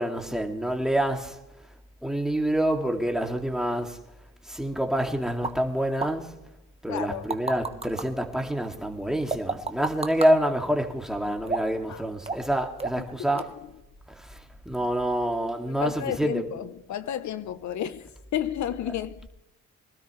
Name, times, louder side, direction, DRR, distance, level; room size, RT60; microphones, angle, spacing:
voice 1, 0.0-1.4 2.0-4.0 4.4-6.4 6.8-13.5 14.1-14.4 14.7-16.5, right 1 dB, ahead, 2.3 m, -27 dB
sound 1, 5.4-5.5 6.0-6.1 7.0-8.0 9.3-10.3 11.5-11.8 12.3-12.5 12.8-13.1 13.4-13.5, right 3 dB, 20° right, 1.3 m, -30 dB
voice 2, 6.9-7.3 11.9-12.0 13.2-13.4 15.8-19.3, left 10 dB, 70° left, 0.9 m, -32 dB
24.0 x 13.0 x 3.2 m
cardioid pair, 90°, 30 cm